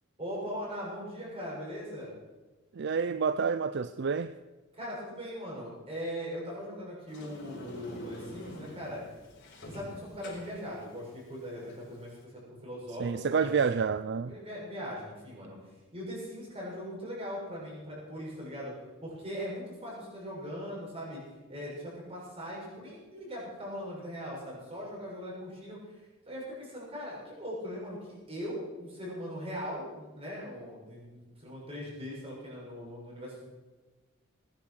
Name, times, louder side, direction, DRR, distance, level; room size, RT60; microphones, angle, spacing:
voice 1, 0.2-2.1 4.7-9.0 9.6-13.5 14.2-18.7 19.0-21.2 21.5-26.0 26.3-33.5, equal, 30° right, 6.9 m, -40 dB
voice 2, 2.8-4.3 13.0-14.3, right 5 dB, 55° right, 0.4 m, -28 dB
Sliding door, 7.1-12.2, equal, 55° left, 4.9 m, -47 dB
19.5 x 10.5 x 6.4 m
head